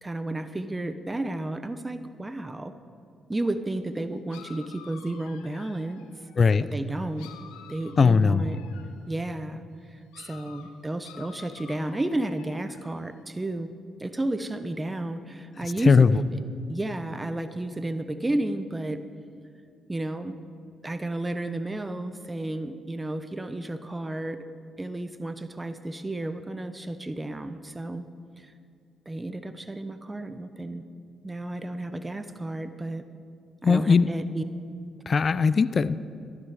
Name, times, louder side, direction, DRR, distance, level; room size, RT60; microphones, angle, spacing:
voice 1, 0.0-2.7 3.3-6.1 6.6-7.3 7.7-8.6 9.1-9.6 9.9-13.7 14.0-16.1 16.7-19.0 19.9-20.3 20.8-24.4 24.8-28.0 28.4-28.5 29.1-30.8 31.2-33.0 33.6-34.4, right 1 dB, 20° right, 10 dB, 0.8 m, -32 dB
sound 1, 3.4-3.6 4.3-6.5 7.2-9.0 10.1-13.0, left 8 dB, 90° left, 1.0 m, -50 dB
voice 2, 8.0-8.5 15.9-16.1 33.6-34.1 35.1-35.9, left 5 dB, 45° left, 15 dB, 0.4 m, -19 dB
14.0 x 12.0 x 4.9 m, 2.3 s
supercardioid pair, 55°, 0 cm